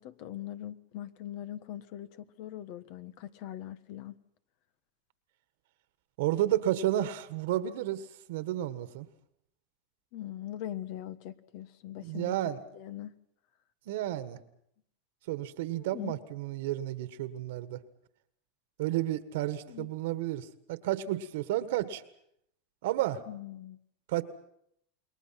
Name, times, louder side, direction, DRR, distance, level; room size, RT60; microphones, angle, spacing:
voice 1, 0.0-4.2 10.1-12.3 12.7-13.1 15.7-16.2 19.5-19.9 23.3-23.8, left 12 dB, 60° left, 1.3 m, -41 dB
voice 2, 6.2-9.1 12.0-12.6 13.8-14.4 15.3-17.8 18.8-22.0 22.8-23.2 24.1-24.2, right 13 dB, 75° right, 1.6 m, -31 dB
29.0 x 21.5 x 5.9 m
supercardioid pair, 120°, 0 cm